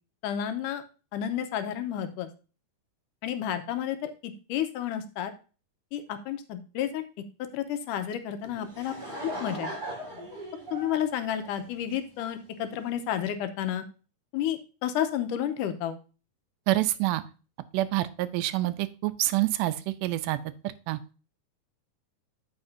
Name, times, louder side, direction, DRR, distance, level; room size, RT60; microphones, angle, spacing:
voice 1, 0.2-0.8 1.1-2.3 3.2-5.3 5.9-7.1 7.5-8.9 9.4-9.7 10.7-13.9 14.3-16.0, left 10 dB, 80° left, 9 dB, 2.4 m, -31 dB
Laughter / Crowd, 8.4-12.2, right 1 dB, 15° right, 4.0 m, -38 dB
voice 2, 16.7-17.2 17.7-19.7 20.0-20.4 20.9-21.0, right 16 dB, 80° right, 12 dB, 2.2 m, -26 dB
13.5 x 5.3 x 2.7 m, 0.34 s
omnidirectional pair, 3.7 m